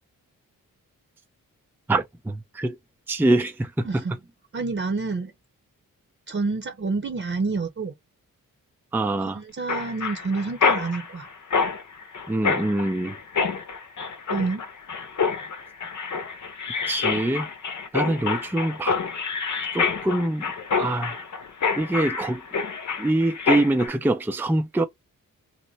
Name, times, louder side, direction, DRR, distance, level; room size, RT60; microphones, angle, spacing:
voice 1, 1.9-2.8 3.1-4.0 8.9-9.4 12.3-13.2 16.9-17.5 17.9-18.9 19.7-20.5 20.8-21.2 21.8-22.4 23.0-24.8, right 1 dB, 5° right, 0.5 m, -24 dB
voice 2, 4.5-5.3 6.3-7.9 9.4-11.3 14.3-14.6, right 4 dB, 35° right, 0.9 m, -28 dB
Mechanisms, 9.7-23.9, left 5 dB, 60° left, 0.9 m, -27 dB
2.9 x 2.1 x 4.1 m
cardioid pair, 55°, 34 cm